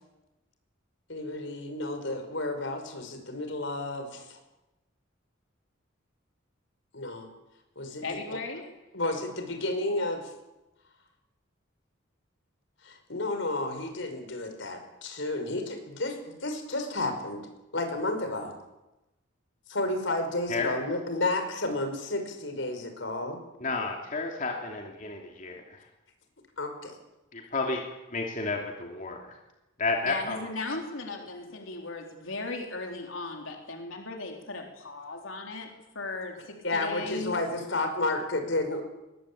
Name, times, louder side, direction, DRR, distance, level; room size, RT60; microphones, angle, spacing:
voice 1, 1.1-4.4 6.9-7.3 7.8-8.4 8.9-10.3 12.8-17.4 17.7-18.5 19.7-23.4 26.6-27.0 36.6-38.8, left 2 dB, 70° left, 6 dB, 5.4 m, -31 dB
voice 2, 8.0-8.6 30.1-37.3, left 3 dB, 85° left, 2 dB, 3.9 m, -37 dB
voice 3, 23.6-25.8 27.3-27.8 28.1-29.3 29.8-30.4, left 3 dB, 40° left, 1 dB, 2.9 m, -31 dB
22.0 x 20.5 x 8.7 m, 1.0 s
head